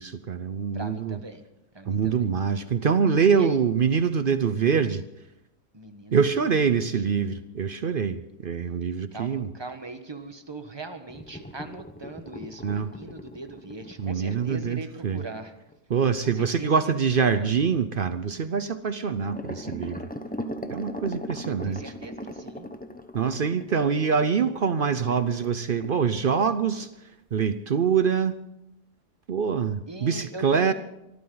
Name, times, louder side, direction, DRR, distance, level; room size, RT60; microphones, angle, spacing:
voice 1, 0.0-1.2 1.9-5.0 6.1-9.5 12.6-12.9 14.0-15.2 15.9-20.1 20.7-21.8 23.1-26.9 27.3-28.4 29.3-30.7, right 6 dB, 65° right, 12 dB, 0.5 m, -24 dB
voice 2, 0.7-1.4 1.7-2.3 3.3-3.6 5.7-6.2 6.7-7.0 9.1-15.5 16.2-17.6 21.4-22.7 29.9-30.7, right 3 dB, 15° right, 7 dB, 1.2 m, -40 dB
sound 1, 11.1-15.8 19.1-26.0 26.3-26.5 26.8-26.9 27.3-27.4, left 1 dB, 10° left, 0.6 m, -39 dB
24.5 x 14.0 x 4.0 m, 0.85 s
omnidirectional pair, 1.8 m